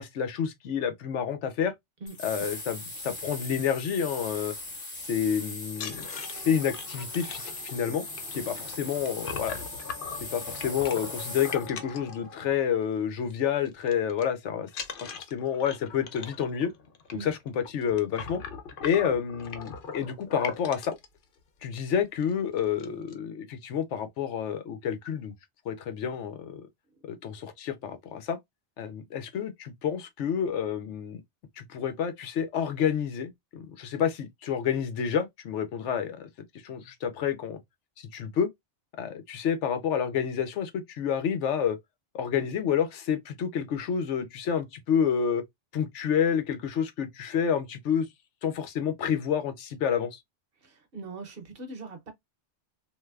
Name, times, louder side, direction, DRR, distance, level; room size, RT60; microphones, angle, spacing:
voice 1, 0.0-1.7 2.2-4.5 5.1-8.0 8.3-9.6 10.3-14.7 15.1-16.7 17.2-18.4 18.8-20.9 21.6-25.3 25.6-26.6 27.1-28.4 28.8-31.2 31.6-36.3 36.6-37.6 38.0-38.5 39.0-41.8 42.1-45.4 45.7-48.1 48.4-50.2, left 8 dB, 80° left, 1.0 m, -29 dB
sound 1, 2.1-11.7, left 2 dB, 40° left, 1.1 m, -39 dB
sound 2, 5.7-12.8 13.1-13.4 13.7-14.2 14.7-21.1 21.7-21.8 22.2-22.3 22.6-23.1, left 6 dB, 55° left, 0.7 m, -40 dB
voice 2, 50.6-52.1, right 3 dB, 55° right, 1.0 m, -41 dB
3.2 x 2.6 x 2.3 m
omnidirectional pair, 1.2 m